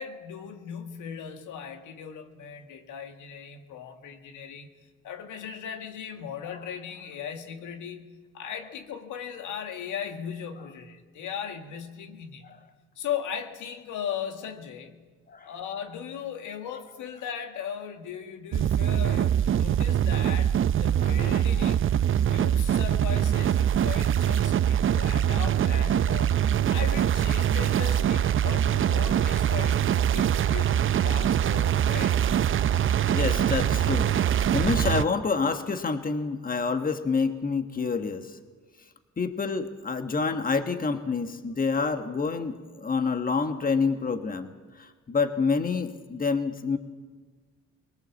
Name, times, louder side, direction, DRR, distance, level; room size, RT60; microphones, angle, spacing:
voice 1, 0.0-4.7 5.0-8.1 8.3-12.5 13.0-15.0 15.4-26.4 26.7-32.2, left 8 dB, 80° left, 5 dB, 1.9 m, -38 dB
sound 1, 18.5-35.0, right 10 dB, 45° right, 0.5 m, -23 dB
voice 2, 33.1-34.1 34.5-38.3 39.2-44.5 44.8-46.8, left 4 dB, 30° left, 7 dB, 1.5 m, -27 dB
21.5 x 19.0 x 7.3 m, 1.4 s
cardioid pair, 90°, 30 cm